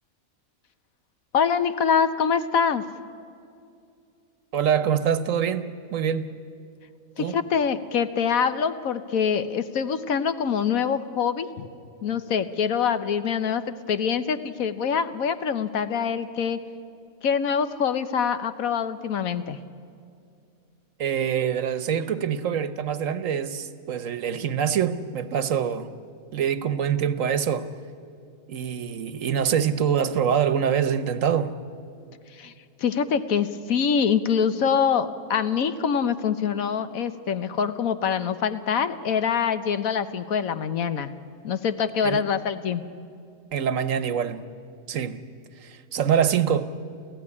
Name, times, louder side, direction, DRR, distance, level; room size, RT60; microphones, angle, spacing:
voice 1, 1.3-2.8 7.2-11.7 12.0-16.6 17.2-19.6 32.4-32.5 32.8-41.1 41.4-42.8, left 7 dB, 80° left, 1.4 m, -25 dB
voice 2, 4.5-6.3 7.2-7.4 21.0-25.9 26.3-27.7 28.5-31.6 42.0-42.2 43.5-44.4 44.9-45.2 45.6-46.6, right 8 dB, 70° right, 1.3 m, -25 dB
29.5 x 15.0 x 9.8 m
omnidirectional pair, 1.5 m